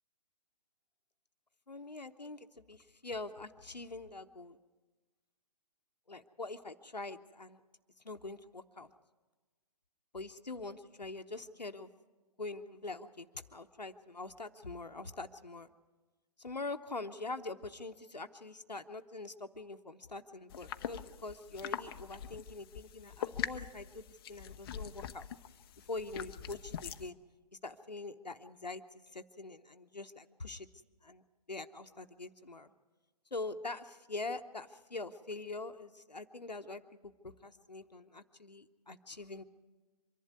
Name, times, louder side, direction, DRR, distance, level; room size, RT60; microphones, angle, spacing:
voice 1, 1.7-4.6 6.1-7.6 8.0-8.9 10.1-11.9 12.4-15.7 16.4-25.3 25.8-27.2 27.6-30.7 31.0-32.7 33.3-39.4, left 3 dB, 85° left, 7 dB, 0.9 m, -44 dB
sound 1, 20.5-27.1, left 9 dB, 35° left, 0.7 m, -43 dB
24.5 x 11.5 x 9.5 m, 1.3 s
figure-of-eight pair, 125°, 21 cm